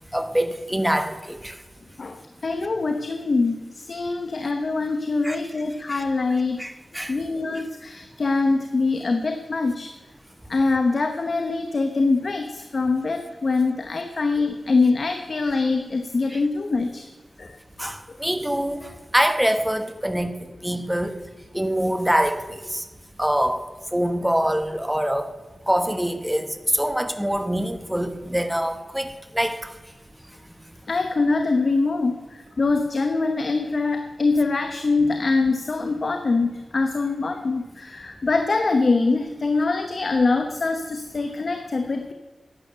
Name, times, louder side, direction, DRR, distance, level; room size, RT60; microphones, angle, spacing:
voice 1, 0.1-1.6 5.2-5.4 5.9-6.0 6.6-7.1 16.3-16.4 17.8-21.1 21.5-22.8 23.2-23.6 23.9-25.3 25.7-29.6, equal, 5° right, 8 dB, 1.1 m, -24 dB
voice 2, 2.0-6.7 7.1-9.9 10.5-17.1 17.4-17.6 30.9-42.1, left 3 dB, 55° left, 6 dB, 1.0 m, -23 dB
11.5 x 8.6 x 6.8 m, 1.2 s
wide cardioid pair, 85°, 0 cm